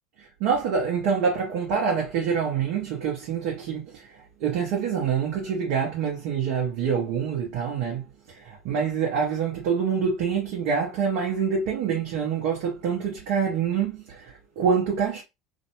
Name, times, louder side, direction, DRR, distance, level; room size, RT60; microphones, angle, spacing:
voice 1, 0.2-15.2, right 6 dB, 65° right, 0.7 m, -26 dB
2.5 x 2.1 x 2.8 m
hypercardioid pair, 75°, 0 cm